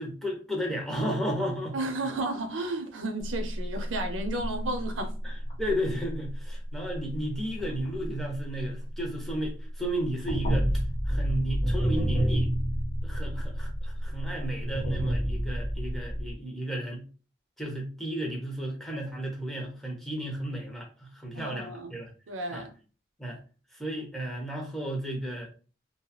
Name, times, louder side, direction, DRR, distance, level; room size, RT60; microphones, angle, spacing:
voice 1, 0.0-1.7 5.2-10.7 11.1-12.5 13.0-17.0 17.6-22.1 22.5-22.7 23.2-23.4 23.7-25.5, right 1 dB, ahead, 0.6 m, -33 dB
voice 2, 1.7-5.1 21.3-21.9 22.3-22.7, right 2 dB, 85° right, 0.6 m, -33 dB
sound 1, 3.2-9.6 9.8-16.3, equal, 30° left, 0.9 m, -30 dB
2.7 x 2.3 x 2.3 m
head